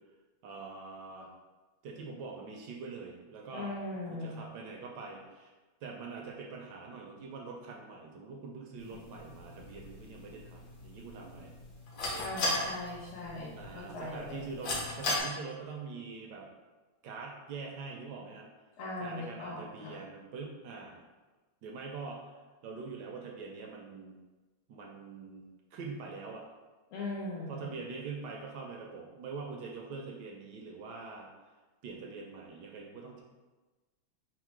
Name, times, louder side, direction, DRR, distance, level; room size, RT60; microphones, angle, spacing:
voice 1, 0.4-1.3 1.8-3.7 4.1-5.5 5.8-11.5 13.6-16.5 17.0-18.5 19.0-21.0 21.6-24.2 24.7-25.4 25.7-26.5 27.5-31.3 31.8-33.2, right 4 dB, 75° right, 0 dB, 0.9 m, -44 dB
voice 2, 3.5-4.4 12.2-14.4 18.8-20.0 26.9-27.7, left 2 dB, 80° left, -5 dB, 1.8 m, -39 dB
sound 1, 8.8-15.2, left 2 dB, 60° left, 1.3 m, -38 dB
4.6 x 2.1 x 4.5 m, 1.2 s
omnidirectional pair, 2.4 m